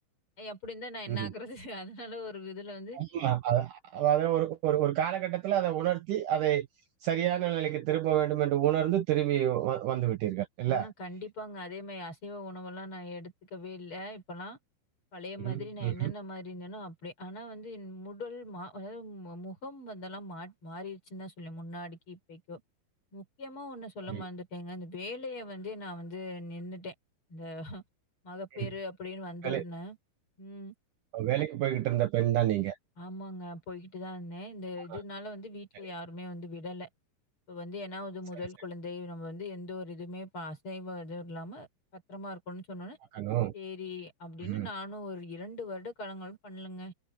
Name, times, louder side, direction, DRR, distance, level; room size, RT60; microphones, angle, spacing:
voice 1, 0.4-3.0 10.7-14.6 15.1-22.6 23.1-26.9 27.3-27.8 28.2-30.0 30.4-30.7 33.0-36.9 37.5-41.7 41.9-43.0 43.5-46.9, left 1 dB, 35° left, 6.4 m, -41 dB
voice 2, 2.9-6.7 7.0-10.9 15.4-16.1 24.1-24.2 28.5-28.7 29.4-29.6 31.1-32.8 34.9-35.0 43.1-43.5 44.4-44.7, right 12 dB, 65° right, 2.3 m, -28 dB
omnidirectional pair, 4.5 m